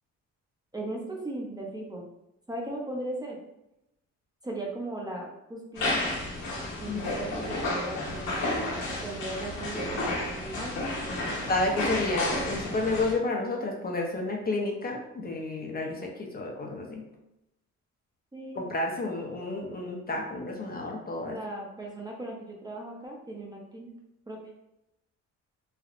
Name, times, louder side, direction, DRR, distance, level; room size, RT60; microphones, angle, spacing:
voice 1, 0.7-2.0 2.5-3.4 4.4-6.0 6.8-11.3 18.3-18.7 21.3-23.9 24.3-24.4, right 1 dB, 15° right, -1 dB, 0.6 m, -38 dB
sound 1, 5.7-13.1, left 2 dB, 85° left, 1.2 m, -31 dB
voice 2, 11.5-17.0 18.6-21.4, left 2 dB, 30° left, 0 dB, 0.6 m, -31 dB
3.4 x 2.3 x 2.4 m, 0.87 s
cardioid pair, 90°, 30 cm